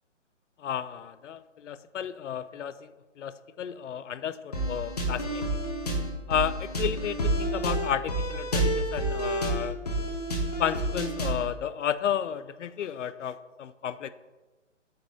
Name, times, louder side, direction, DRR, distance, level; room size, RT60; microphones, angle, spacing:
voice 1, 0.6-2.9 3.2-5.4 6.3-9.8 10.6-14.1, left 9 dB, 75° left, 14 dB, 0.5 m, -32 dB
sound 1, 4.5-11.5, right 1 dB, 35° left, 1.0 m, -29 dB
7.7 x 4.0 x 3.6 m, 1.2 s
hypercardioid pair, 180°, 37 cm